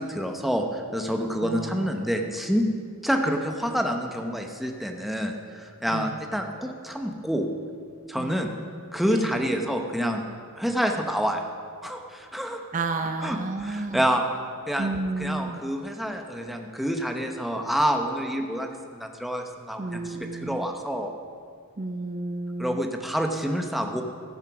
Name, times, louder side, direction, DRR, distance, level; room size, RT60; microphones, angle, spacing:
voice 1, 0.0-2.6 3.0-7.5 8.1-8.5 8.9-10.2 10.6-11.4 11.8-12.6 13.2-14.2 14.7-14.9 15.2-21.1 22.6-24.0, equal, ahead, 3 dB, 0.8 m, -28 dB
voice 2, 1.4-2.0 5.9-6.2 8.2-8.5 9.1-9.4 12.7-14.1 14.8-15.6 19.8-20.7 21.8-22.9, right 3 dB, 35° right, 6 dB, 0.5 m, -32 dB
15.0 x 7.5 x 5.9 m, 2.2 s
head